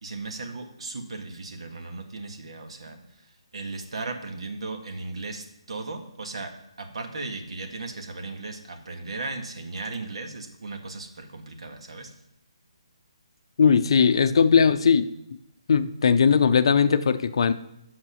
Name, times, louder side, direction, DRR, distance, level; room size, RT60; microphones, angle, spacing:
voice 1, 0.0-3.1 3.5-12.1, right 3 dB, 65° right, 5 dB, 1.6 m, -36 dB
voice 2, 13.6-15.1 15.7-17.5, left 6 dB, 55° left, 12 dB, 0.6 m, -19 dB
8.0 x 6.0 x 5.6 m, 0.84 s
hypercardioid pair, 155°, 3 cm